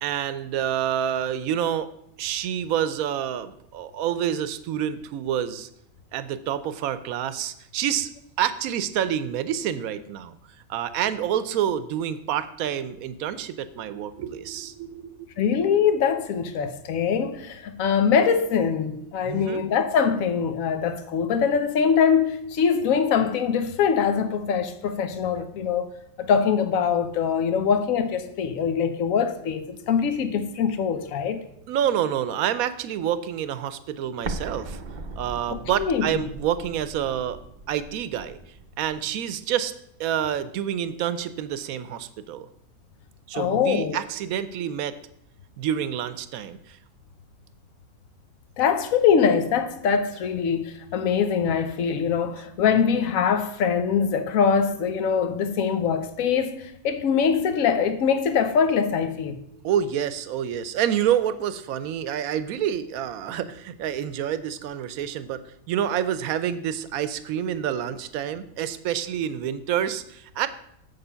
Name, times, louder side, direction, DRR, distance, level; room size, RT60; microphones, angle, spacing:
voice 1, 0.0-1.9 2.2-5.7 6.1-8.1 8.4-10.4 10.7-15.3 19.2-19.6 31.7-34.8 35.2-37.4 37.7-38.4 38.8-39.7 40.0-42.5 43.3-45.0 45.6-46.8 59.6-70.5, right 10 dB, 85° right, 1.1 m, -28 dB
voice 2, 15.4-25.8 26.2-31.4 35.5-36.0 43.3-44.0 48.6-59.4, left 6 dB, 75° left, 1.2 m, -23 dB
Explosion, 34.2-39.0, right 3 dB, 45° right, 0.6 m, -38 dB
7.5 x 6.7 x 5.6 m
omnidirectional pair, 1.5 m